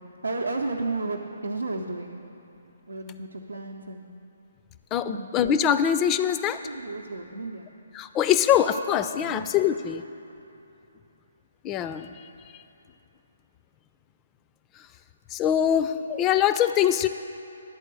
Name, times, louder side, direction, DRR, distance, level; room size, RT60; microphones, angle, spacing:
voice 1, 0.2-2.2 2.9-4.1 5.1-5.3 6.6-7.7 9.2-9.5, right 3 dB, 85° right, -1 dB, 0.6 m, -32 dB
voice 2, 4.9-6.6 8.0-10.0 11.6-12.1 15.3-17.1, left 9 dB, 20° left, 11 dB, 0.3 m, -23 dB
11.0 x 4.6 x 7.5 m, 2.8 s
figure-of-eight pair, 135°, 0 cm